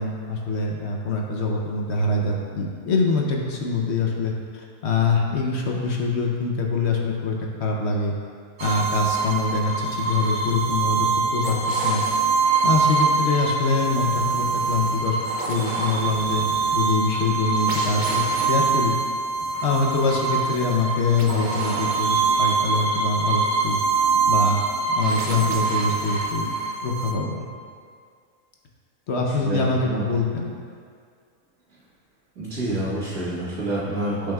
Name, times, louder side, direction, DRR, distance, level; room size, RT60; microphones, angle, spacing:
voice 1, 0.0-8.2 8.6-11.1 11.3-12.1 12.6-15.2 15.5-16.5 16.7-18.9 19.6-23.8 24.3-24.6 25.0-26.5 26.8-27.4 29.1-30.5, left 3 dB, 55° left, 0 dB, 1.0 m, -24 dB
sound 1, 8.6-27.1, right 4 dB, 45° right, 0.6 m, -24 dB
voice 2, 29.3-30.0 32.4-34.3, right 1 dB, 90° right, -13 dB, 2.1 m, -28 dB
10.5 x 5.4 x 2.3 m, 2.1 s
omnidirectional pair, 1.5 m